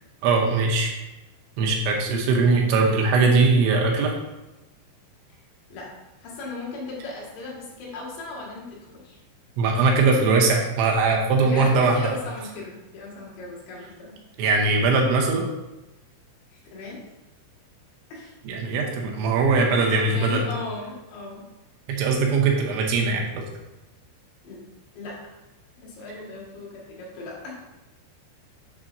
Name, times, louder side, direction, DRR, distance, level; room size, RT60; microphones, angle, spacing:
voice 1, 0.2-1.0 1.6-4.1 9.6-12.1 14.4-15.5 18.5-20.4 21.9-23.4, right 3 dB, 80° right, 0 dB, 3.1 m, -21 dB
voice 2, 6.2-9.2 9.8-10.0 11.4-14.2 16.5-17.0 18.1-18.3 19.7-21.5 24.4-24.6 25.0-25.2 25.8-27.5, left 3 dB, 70° left, -4 dB, 3.7 m, -37 dB
8.2 x 6.6 x 2.6 m, 1.0 s
omnidirectional pair, 5.6 m